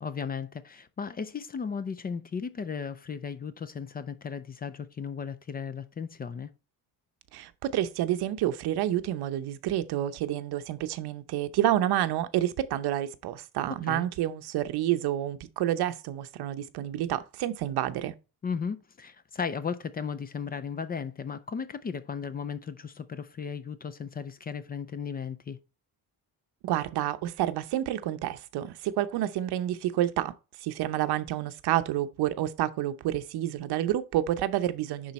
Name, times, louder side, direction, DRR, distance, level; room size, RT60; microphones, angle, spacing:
voice 1, 0.0-6.5 13.8-14.1 18.4-25.6, left 6 dB, 25° left, 0.4 m, -35 dB
voice 2, 7.3-18.1 26.6-30.3 30.6-35.1, right 12 dB, 80° right, 0.8 m, -29 dB
10.5 x 4.0 x 4.2 m
cardioid pair, 165°, 38 cm